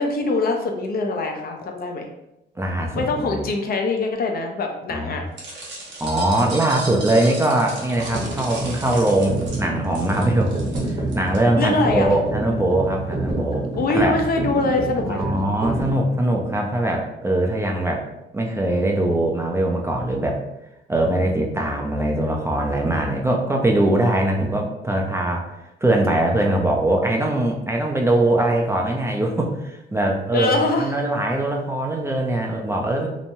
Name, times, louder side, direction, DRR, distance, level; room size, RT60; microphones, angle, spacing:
voice 1, 0.0-2.1 2.9-5.2 11.6-12.1 13.7-15.4 30.3-31.0, left 3 dB, 50° left, 3 dB, 0.5 m, -23 dB
voice 2, 2.6-3.4 4.9-5.2 6.0-10.5 10.9-14.1 15.1-18.1 18.3-20.4 20.9-25.5 25.8-33.1, right 1 dB, 15° right, 0 dB, 0.4 m, -22 dB
sound 1, 5.4-11.4, right 2 dB, 60° right, 1.0 m, -35 dB
sound 2, 7.9-15.9, right 2 dB, 30° right, 0.9 m, -28 dB
2.9 x 2.1 x 2.6 m, 0.88 s
cardioid pair, 90°, 20 cm